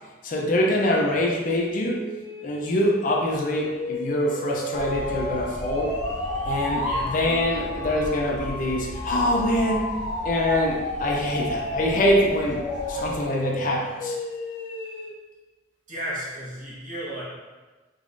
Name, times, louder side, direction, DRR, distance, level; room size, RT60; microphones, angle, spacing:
voice 1, 0.2-2.0 2.4-5.9 6.5-9.9 10.2-12.6 12.9-14.1, left 1 dB, 45° left, 0 dB, 0.5 m, -24 dB
sound 1, 1.9-7.1 9.3-15.1, left 1 dB, 85° left, 0.8 m, -32 dB
sound 2, 4.7-13.2, equal, 5° right, 1.3 m, -35 dB
voice 2, 15.9-17.2, right 1 dB, 40° right, -8 dB, 1.3 m, -33 dB
3.6 x 3.5 x 2.5 m, 1.2 s
head